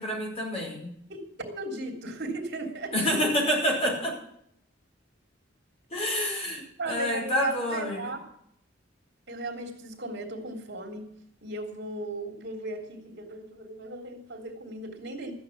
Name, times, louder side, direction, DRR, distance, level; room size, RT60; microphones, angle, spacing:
voice 1, 0.0-0.9 2.9-4.2 5.9-8.1, equal, 30° left, -1 dB, 5.2 m, -28 dB
voice 2, 1.1-3.1 5.9-6.1 6.8-8.2 9.3-11.1 11.4-15.3, right 2 dB, 60° right, 3 dB, 3.5 m, -36 dB
14.5 x 9.8 x 7.3 m, 0.71 s
head